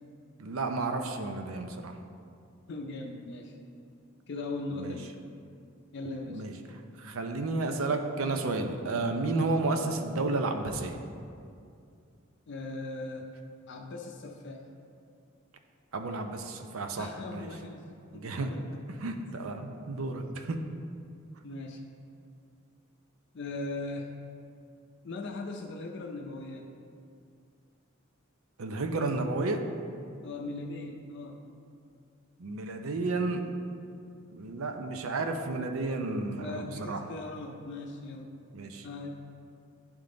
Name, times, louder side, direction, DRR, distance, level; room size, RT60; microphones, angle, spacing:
voice 1, 0.4-2.0 4.8-5.0 6.3-6.5 7.0-11.0 15.9-17.5 18.1-18.5 19.0-20.6 28.6-29.6 32.4-33.4 34.3-37.0 38.5-38.9, right 3 dB, 90° right, 6 dB, 0.6 m, -32 dB
voice 2, 2.7-3.5 4.3-5.1 5.9-6.4 12.5-13.3 13.7-14.7 17.0-17.9 18.1-19.1 21.4-21.8 23.3-24.1 25.0-26.7 30.2-31.4 36.4-38.3 38.8-39.1, left 2 dB, 60° left, 1 dB, 0.5 m, -39 dB
10.5 x 3.6 x 3.8 m, 2.4 s
head